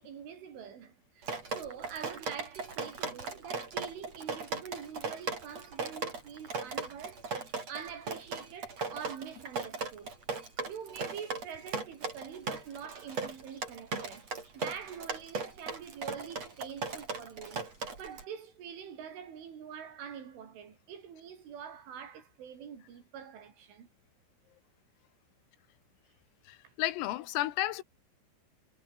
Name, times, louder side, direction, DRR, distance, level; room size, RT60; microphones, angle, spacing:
voice 1, 0.0-7.2 7.7-10.2 10.7-14.3 14.5-17.7 18.0-23.9 26.6-26.7, right 8 dB, 70° right, 6.3 m, -45 dB
Drip, 1.2-18.2, right 4 dB, 30° right, 5.7 m, -38 dB
voice 2, 26.5-27.8, left 16 dB, 85° left, 4.1 m, -32 dB
omnidirectional pair, 5.9 m